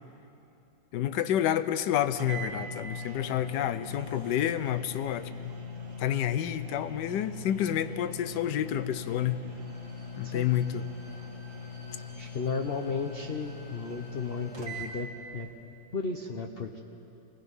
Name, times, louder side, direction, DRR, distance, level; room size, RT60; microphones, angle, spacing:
voice 1, 0.9-5.3 6.0-9.4 10.2-10.8, left 11 dB, 70° left, 13 dB, 1.2 m, -29 dB
sound 1, 1.8-1.9 2.2-15.0, left 3 dB, 45° right, 2.1 m, -41 dB
Bowed string instrument, 9.4-15.1 15.4-15.5, left 2 dB, 25° left, 1.8 m, -56 dB
voice 2, 12.2-15.1 15.3-15.5 15.9-16.8, left 4 dB, 50° left, 3 dB, 0.7 m, -34 dB
26.5 x 19.0 x 5.5 m, 2.9 s
omnidirectional pair, 2.1 m